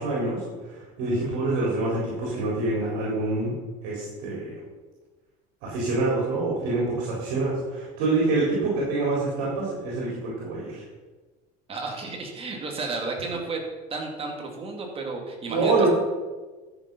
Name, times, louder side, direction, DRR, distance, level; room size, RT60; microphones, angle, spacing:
voice 1, 0.0-3.5 3.8-4.6 5.6-10.8 15.5-15.9, right 2 dB, 65° right, -5 dB, 4.2 m, -26 dB
voice 2, 11.7-13.6 13.9-15.9, right 3 dB, 30° right, 1 dB, 2.7 m, -32 dB
13.0 x 7.4 x 5.5 m, 1.3 s
supercardioid pair, 125°, 20 cm